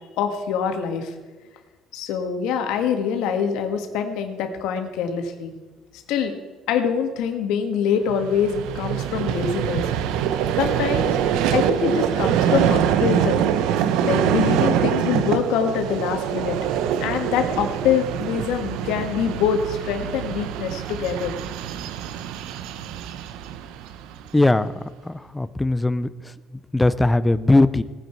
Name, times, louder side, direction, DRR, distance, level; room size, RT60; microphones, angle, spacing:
voice 1, 0.2-1.1 1.9-5.5 6.1-6.3 6.7-9.9 10.6-11.2 11.5-13.5 14.0-16.6 17.0-21.3, left 7 dB, 80° left, 5 dB, 1.8 m, -24 dB
Vehicle, 8.1-24.4, right 9 dB, 85° right, 0.7 m, -24 dB
voice 2, 24.3-24.7 25.0-26.1 26.7-27.8, left 2 dB, 10° left, 15 dB, 0.4 m, -19 dB
18.5 x 9.3 x 4.5 m, 1.3 s
cardioid pair, 160°, 0 cm